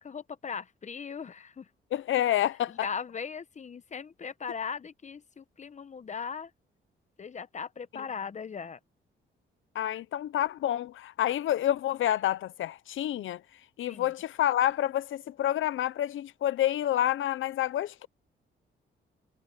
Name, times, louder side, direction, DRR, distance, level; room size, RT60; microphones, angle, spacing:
voice 1, 0.0-1.7 2.7-6.5 7.2-8.8 13.9-14.1, left 6 dB, 35° left, 0.9 m, -38 dB
voice 2, 1.9-2.7 9.7-13.4 13.8-18.1, left 12 dB, 75° left, 0.7 m, -28 dB
cardioid pair, 80°, 20 cm